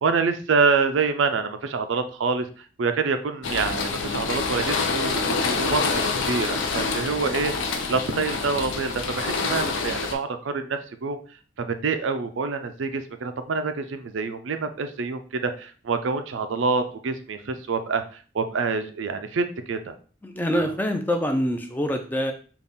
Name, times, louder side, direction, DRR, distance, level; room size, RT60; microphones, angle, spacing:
voice 1, 0.0-2.5 2.8-7.5 7.9-11.2 11.6-20.0 20.6-20.7, right 4 dB, 90° right, 9 dB, 0.5 m, -26 dB
sound 1, 3.4-10.2, left 4 dB, 90° left, 0.6 m, -27 dB
voice 2, 20.2-22.3, equal, 10° left, 5 dB, 0.4 m, -25 dB
4.0 x 2.4 x 3.5 m, 0.39 s
head